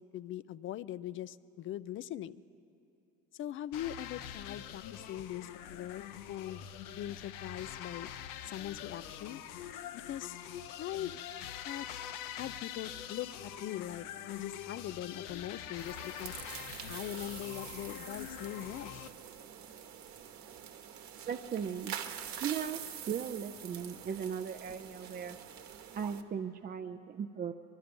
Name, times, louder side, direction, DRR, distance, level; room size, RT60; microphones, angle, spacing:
voice 1, 0.0-2.4 3.3-6.6 6.9-8.1 8.4-9.4 10.1-10.4 10.8-11.2 11.6-12.1 12.3-16.4 16.9-19.1, left 12 dB, 35° left, 18 dB, 0.4 m, -41 dB
sound 1, 3.7-19.1, left 10 dB, 65° left, 0.7 m, -44 dB
sound 2, 15.8-26.2, right 9 dB, 50° right, 1.2 m, -46 dB
voice 2, 21.3-22.0 22.4-25.4 25.9-27.5, right 7 dB, 25° right, 5 dB, 0.4 m, -37 dB
22.0 x 12.0 x 5.2 m, 2.7 s
supercardioid pair, 90°, 36 cm